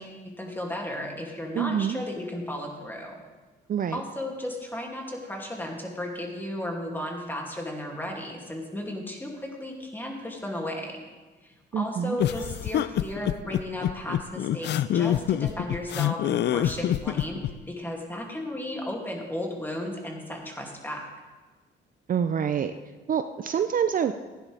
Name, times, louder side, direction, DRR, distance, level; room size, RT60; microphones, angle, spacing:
voice 1, 0.0-3.2 3.9-11.0 11.4-21.1, left 1 dB, 10° left, 0 dB, 2.6 m, -35 dB
voice 2, 1.5-2.0 3.7-4.0 11.7-12.2 22.1-22.7 23.1-24.1, right 8 dB, 45° right, 9 dB, 0.5 m, -26 dB
sound 1, 12.2-17.5, left 11 dB, 60° left, 0.4 m, -26 dB
16.0 x 10.0 x 3.4 m, 1.3 s
cardioid pair, 90°, 20 cm